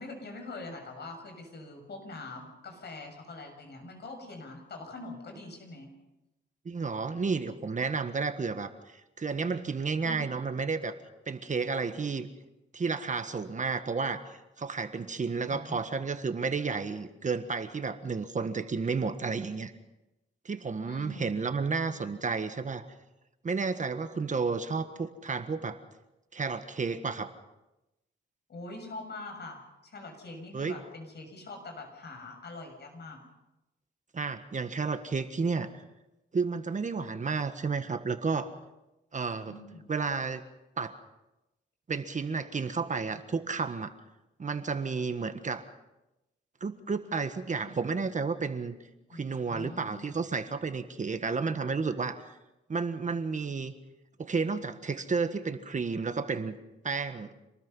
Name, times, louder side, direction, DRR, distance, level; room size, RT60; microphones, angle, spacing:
voice 1, 0.0-5.9 10.0-10.4 15.5-15.8 20.8-21.4 28.5-33.2 34.3-34.4 39.5-39.9 49.1-50.2, left 2 dB, 60° left, 4 dB, 6.9 m, -44 dB
voice 2, 6.6-10.9 11.3-12.3 12.7-14.2 14.6-19.7 20.4-22.9 23.4-25.8 26.3-27.3 30.5-30.7 34.1-35.7 36.3-38.5 39.1-39.6 39.9-40.4 40.8-40.9 41.9-43.9 44.4-45.6 46.6-48.8 49.1-52.2 52.7-53.7 54.2-56.6 56.8-57.3, right 4 dB, 40° right, 9 dB, 1.5 m, -31 dB
26.5 x 20.0 x 5.6 m, 0.97 s
cardioid pair, 90°, 20 cm